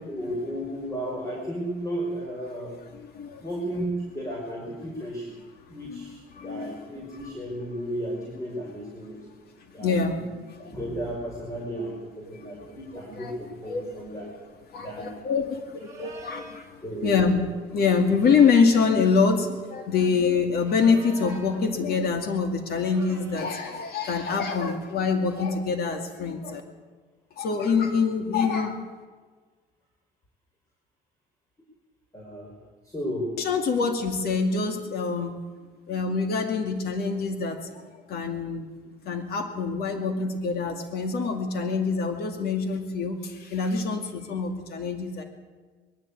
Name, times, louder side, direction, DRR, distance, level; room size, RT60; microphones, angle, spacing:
voice 1, 0.1-2.8 3.4-5.4 5.7-9.2 9.7-10.3 10.6-14.2 14.8-15.1 16.0-16.1 16.8-17.3 32.1-32.5 32.8-33.4, equal, 20° left, -1 dB, 5.2 m, -34 dB
voice 2, 2.9-3.4 5.9-6.1 6.3-6.7 7.2-7.3 9.8-10.2 10.6-10.8 12.2-13.3 13.7-14.3 14.7-16.7 17.0-17.5 17.7-26.6 27.4-28.8 33.4-35.3 35.9-37.7 38.1-38.7 39.1-45.2, left 5 dB, 65° left, 5 dB, 2.3 m, -25 dB
sound 1, 15.8-16.7 18.1-19.1 20.5-21.7 22.7-23.8, right 2 dB, 20° right, 4.1 m, -46 dB
21.5 x 14.0 x 8.5 m, 1.4 s
cardioid pair, 110°, 17 cm